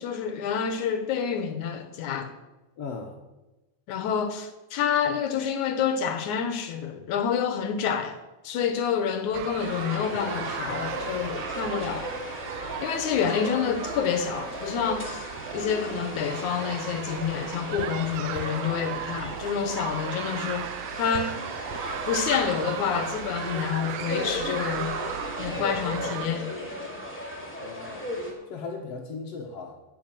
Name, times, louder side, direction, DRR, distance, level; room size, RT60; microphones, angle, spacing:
voice 1, 0.0-2.3 3.9-8.2 8.4-12.1 12.8-15.3 15.5-21.4 22.1-24.9 25.4-26.5, left 7 dB, 75° left, 2.6 m, -28 dB
voice 2, 2.8-3.1 27.6-28.1 28.5-29.8, left 4 dB, 60° left, 2.2 m, -37 dB
sound 1, 9.3-26.3, right 13 dB, 80° right, 1.5 m, -37 dB
sound 2, 9.6-28.3, equal, 5° left, 2.8 m, -36 dB
11.0 x 8.5 x 9.2 m
omnidirectional pair, 3.5 m